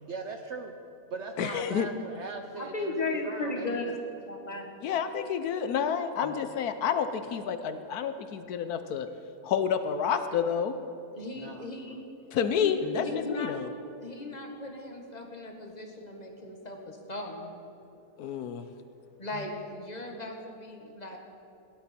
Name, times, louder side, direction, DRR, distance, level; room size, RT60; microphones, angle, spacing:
voice 1, 0.0-0.8 1.1-3.8 11.3-11.7, right 4 dB, 60° right, 5 dB, 0.8 m, -39 dB
voice 2, 1.4-1.9 4.8-9.1 9.4-10.7 12.3-13.7 18.2-18.6, left 7 dB, 75° left, 10 dB, 1.1 m, -29 dB
voice 3, 2.5-4.7 6.2-6.3 11.1-12.1 12.5-13.5 14.0-17.5 19.2-21.2, left 2 dB, 25° left, 2 dB, 1.4 m, -36 dB
17.0 x 11.0 x 4.3 m, 2.9 s
omnidirectional pair, 1.7 m